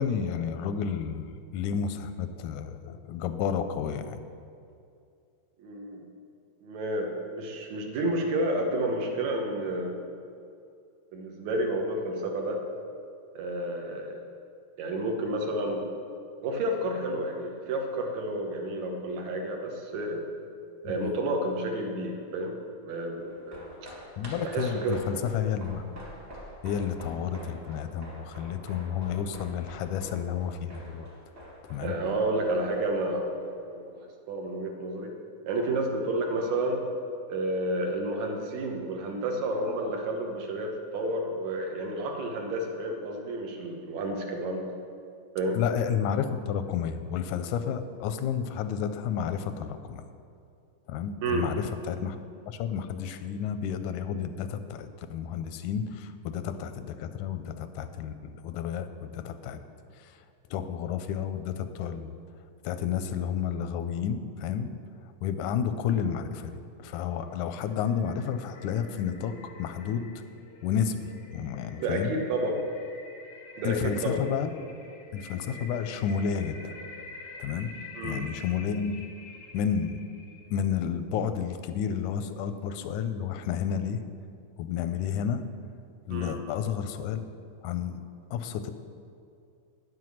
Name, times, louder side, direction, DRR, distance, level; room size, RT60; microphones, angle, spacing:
voice 1, 0.0-4.2 20.8-21.1 24.2-25.9 26.6-31.1 31.7-32.0 45.5-50.1 50.9-52.2 52.5-59.6 59.9-60.2 60.5-62.1 62.6-64.7 65.2-70.1 70.6-71.0 71.3-72.1 73.6-74.6 75.1-76.7 77.4-77.7 78.0-79.1 79.5-80.0 80.5-84.0 84.6-85.4 86.1-87.2 87.6-88.0 88.3-88.7, left 8 dB, 90° left, 9 dB, 2.1 m, -31 dB
voice 2, 5.6-6.0 6.6-10.0 11.1-12.6 13.4-14.2 14.8-15.9 16.4-20.2 20.9-22.6 22.8-23.7 24.4-25.0 31.8-34.0 34.3-35.1 35.5-36.8 37.3-44.7 45.4-45.6 51.2-51.5 71.8-72.6 73.6-74.2 78.0-78.2 86.1-86.4, right 1 dB, 75° right, 2 dB, 2.4 m, -30 dB
sound 1, 23.2-33.8 34.0-34.1, equal, 25° right, 1.4 m, -47 dB
sound 2, 67.3-80.7, left 2 dB, 70° left, 0.9 m, -47 dB
9.4 x 7.7 x 6.3 m, 2.5 s
omnidirectional pair, 3.4 m